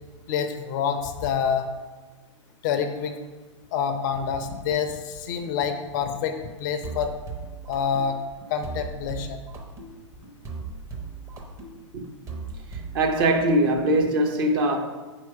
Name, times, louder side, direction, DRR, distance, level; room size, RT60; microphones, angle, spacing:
voice 1, 0.3-1.7 2.6-3.2 3.7-7.1 7.7-8.2 8.5-9.4, left 7 dB, 40° left, 0.6 m, -27 dB
sound 1, 6.8-14.0, right 4 dB, 20° right, 0.8 m, -38 dB
voice 2, 12.7-14.8, right 1 dB, 45° right, 0.9 m, -22 dB
4.7 x 4.6 x 5.8 m
figure-of-eight pair, 105°, 16 cm